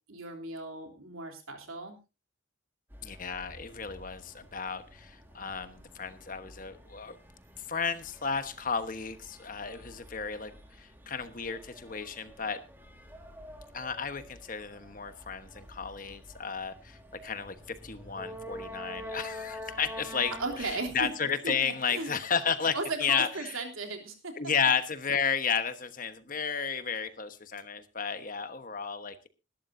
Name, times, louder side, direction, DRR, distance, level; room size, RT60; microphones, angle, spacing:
voice 1, 0.1-2.0 20.4-21.1 21.4-22.1 22.7-24.3, right 3 dB, 85° right, 4 dB, 3.5 m, -36 dB
sound 1, 2.9-21.1, equal, 10° right, 2.0 m, -48 dB
voice 2, 3.0-7.2 7.7-12.6 13.7-23.6 24.4-29.3, left 6 dB, 40° left, 10 dB, 1.2 m, -33 dB
20.0 x 12.0 x 2.7 m, 0.28 s
head